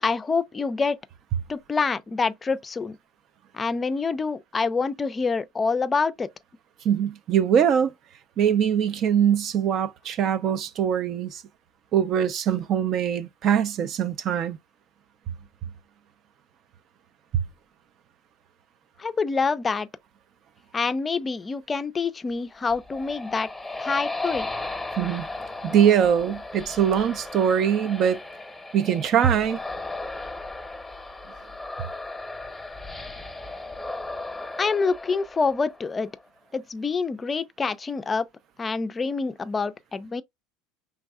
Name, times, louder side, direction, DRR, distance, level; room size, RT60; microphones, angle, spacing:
voice 1, 0.0-1.0 1.5-3.0 3.5-6.3 19.0-19.9 20.7-23.5 23.8-24.5 34.6-36.1 36.5-38.3 38.6-40.2, left 4 dB, 20° left, 0.4 m, -26 dB
voice 2, 6.8-7.9 8.4-11.4 11.9-14.6 17.3-17.4 25.0-25.3 25.6-28.2 28.7-29.6 31.3-31.4, right 8 dB, 45° right, 0.5 m, -22 dB
sound 1, 22.5-36.1, left 2 dB, 5° left, 0.9 m, -36 dB
5.2 x 3.4 x 2.3 m
supercardioid pair, 100°, 0 cm